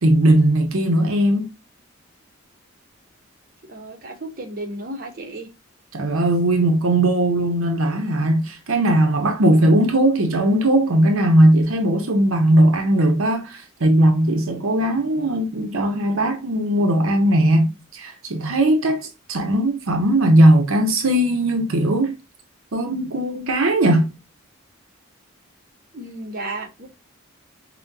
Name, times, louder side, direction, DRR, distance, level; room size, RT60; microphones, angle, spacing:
voice 1, 0.0-1.5 5.9-22.2 22.7-24.1, right 1 dB, 70° right, 0.7 m, -18 dB
voice 2, 3.7-5.5 25.9-26.9, right 2 dB, 40° right, 0.8 m, -33 dB
5.7 x 2.2 x 2.6 m
head